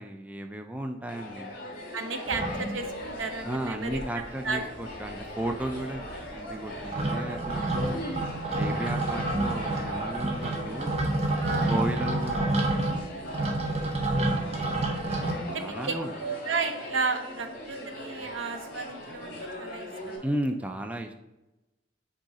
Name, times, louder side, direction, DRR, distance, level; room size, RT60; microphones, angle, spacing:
voice 1, 0.0-1.5 3.4-8.0 8.6-10.9 11.7-12.9 14.4-14.9 15.2-16.1 20.2-21.1, right 1 dB, 5° right, 5 dB, 0.3 m, -34 dB
sound 1, 1.1-20.2, left 1 dB, 50° left, 2.0 m, -40 dB
voice 2, 1.9-4.0 4.4-4.6 7.0-7.3 8.7-8.9 11.4-11.7 13.9-14.2 15.5-20.2, right 4 dB, 85° right, 7 dB, 0.7 m, -34 dB
sound 2, 2.3-3.2 3.6-3.7 3.8-4.5 4.8-15.3, right 2 dB, 35° right, 0.7 m, -29 dB
6.3 x 3.8 x 4.2 m, 1.0 s
head